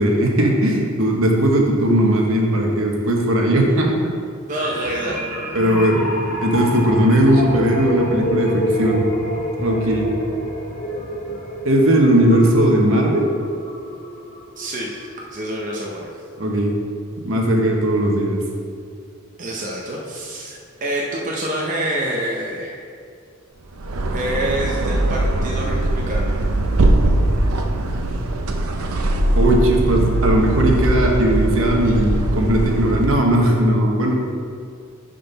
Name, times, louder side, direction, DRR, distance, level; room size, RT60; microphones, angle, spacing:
voice 1, 0.0-3.9 5.5-6.0 6.4-9.0 9.6-10.1 11.6-13.3 16.4-16.7 17.2-18.4 29.3-34.1, right 1 dB, 65° right, 0 dB, 1.1 m, -17 dB
sound 1, 4.5-15.3 15.6-15.8, equal, 35° left, 1.6 m, -28 dB
voice 2, 4.5-5.3 14.6-16.1 19.4-22.8 24.1-26.3, right 1 dB, 35° right, -2 dB, 0.7 m, -27 dB
sound 2, 23.7-33.3, right 1 dB, 85° right, 0.6 m, -20 dB
11.0 x 3.9 x 4.0 m, 2.2 s
head